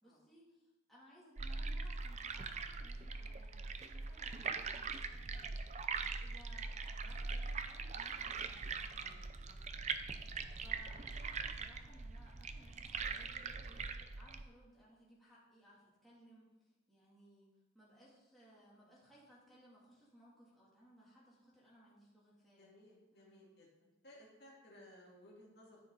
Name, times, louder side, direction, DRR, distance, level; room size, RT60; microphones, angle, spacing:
voice 1, 0.0-5.5 5.9-9.8 10.6-22.7 23.1-23.5, equal, ahead, -8 dB, 3.0 m, -63 dB
sound 1, 1.4-14.4, right 4 dB, 35° right, 0.5 m, -42 dB
voice 2, 9.0-9.6 10.3-10.8 22.6-25.8, left 1 dB, 55° left, -4 dB, 2.5 m, -61 dB
14.0 x 6.3 x 4.1 m, 1.1 s
head